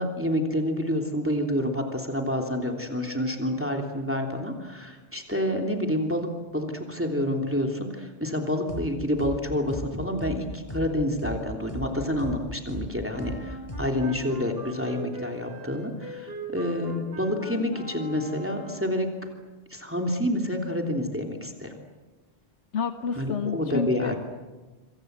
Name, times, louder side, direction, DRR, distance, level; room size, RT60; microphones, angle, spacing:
voice 1, 0.0-6.3 6.5-19.1 19.7-21.7 23.2-24.2, left 1 dB, 10° right, 2 dB, 3.1 m, -28 dB
sound 1, 8.7-8.9 9.2-9.4 9.7-9.9 10.2-10.4 10.7-10.9 11.2-11.4 11.7-11.9 12.2-12.4 12.7-12.9 13.2-13.4 13.7-13.9, left 1 dB, 30° left, 6.4 m, -35 dB
Wind instrument woodwind instrument, 13.1-19.1, right 2 dB, 60° right, 5.2 m, -41 dB
voice 2, 22.7-24.1, left 6 dB, 85° left, 8 dB, 1.3 m, -29 dB
26.5 x 25.5 x 8.1 m, 1.2 s
omnidirectional pair, 1.1 m